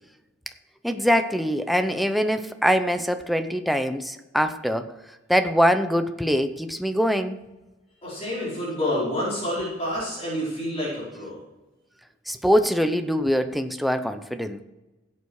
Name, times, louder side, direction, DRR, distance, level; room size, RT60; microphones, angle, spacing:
voice 1, 0.8-4.9 5.3-7.4 12.3-14.6, equal, ahead, 8 dB, 0.6 m, -23 dB
voice 2, 8.0-11.4, left 1 dB, 30° left, -7 dB, 4.6 m, -28 dB
15.5 x 8.5 x 4.8 m, 1.1 s
head